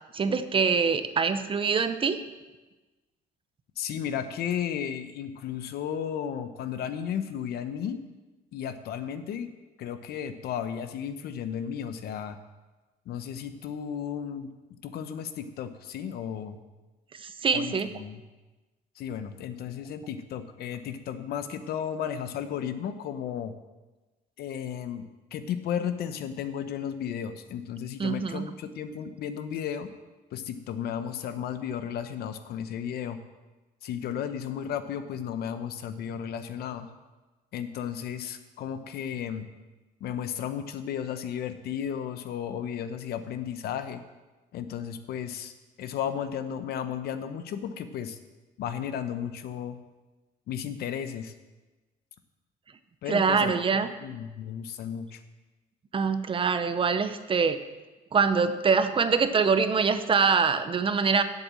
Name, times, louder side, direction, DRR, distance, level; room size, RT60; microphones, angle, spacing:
voice 1, 0.1-2.2 17.1-17.9 28.0-28.5 53.1-53.9 55.9-57.6 58.1-61.2, right 5 dB, 30° right, 11 dB, 0.7 m, -24 dB
voice 2, 3.8-8.0 8.5-9.5 9.8-12.4 13.1-14.5 14.8-16.6 17.5-18.2 19.0-23.5 24.4-25.0 25.3-29.9 30.3-33.2 33.8-36.9 37.5-39.5 40.0-44.0 44.5-45.5 45.8-48.2 48.6-49.8 50.5-51.3 53.0-53.5 54.0-55.2, left 8 dB, 70° left, 10 dB, 0.8 m, -34 dB
7.9 x 7.1 x 7.6 m, 1.2 s
cardioid pair, 110°, 17 cm